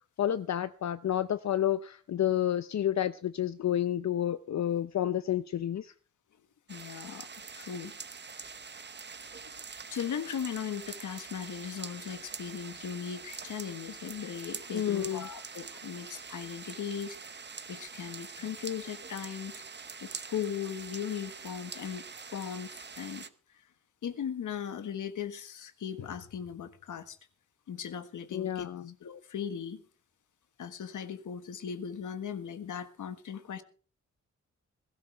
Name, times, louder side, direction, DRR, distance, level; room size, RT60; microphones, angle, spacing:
voice 1, 0.2-5.9 14.7-15.3 28.3-28.9, left 11 dB, 65° left, 0.6 m, -30 dB
voice 2, 6.7-7.3 7.5-8.0 9.1-9.6 9.9-19.6 20.0-22.1 22.3-23.3 24.0-27.2 27.7-28.7 29.0-29.8 30.6-33.6, left 8 dB, 90° left, 1.5 m, -38 dB
sound 1, 6.7-23.3, right 5 dB, 35° right, 1.0 m, -45 dB
21.0 x 12.5 x 3.4 m
cardioid pair, 90°, 30 cm